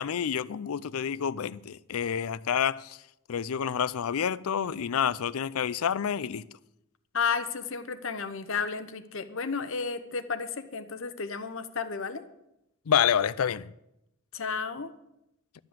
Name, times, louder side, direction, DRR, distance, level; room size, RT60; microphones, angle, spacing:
voice 1, 0.0-3.0 3.3-6.4 12.9-13.7, left 8 dB, 75° left, 0.4 m, -28 dB
voice 2, 7.1-12.3 14.3-14.9, left 5 dB, 60° left, 0.9 m, -32 dB
12.0 x 7.6 x 7.7 m
head